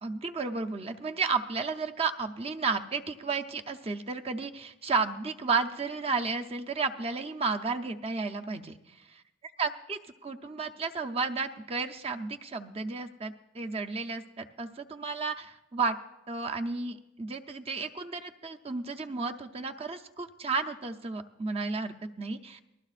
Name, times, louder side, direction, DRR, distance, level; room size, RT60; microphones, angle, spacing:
voice 1, 0.0-8.7 9.6-16.0 16.3-22.6, right 4 dB, 30° right, 5 dB, 0.7 m, -32 dB
27.5 x 19.5 x 2.5 m, 0.93 s
head